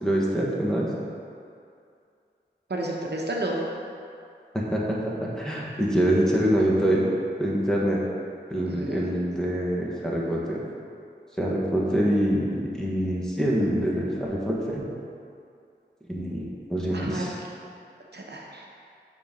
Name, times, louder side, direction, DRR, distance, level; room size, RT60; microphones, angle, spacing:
voice 1, 0.0-0.9 4.5-7.1 7.4-8.0 8.5-10.6 11.4-14.8 16.1-17.3, equal, 5° left, -4 dB, 1.3 m, -25 dB
voice 2, 2.7-3.6 8.7-9.1 16.9-17.5 18.1-18.7, right 1 dB, 65° right, -2 dB, 0.9 m, -31 dB
6.8 x 3.7 x 5.1 m, 2.4 s
wide cardioid pair, 50°, 19 cm